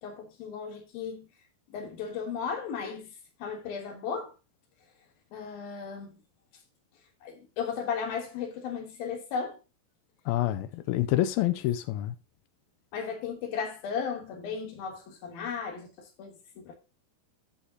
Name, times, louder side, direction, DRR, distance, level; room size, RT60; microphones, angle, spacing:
voice 1, 0.0-1.3 1.7-3.1 3.4-4.3 5.3-6.1 7.2-9.6 12.9-15.9 16.2-16.7, left 6 dB, 65° left, 2.9 m, -35 dB
voice 2, 10.3-12.2, left 14 dB, 85° left, 2.1 m, -27 dB
13.5 x 6.3 x 2.8 m
omnidirectional pair, 4.9 m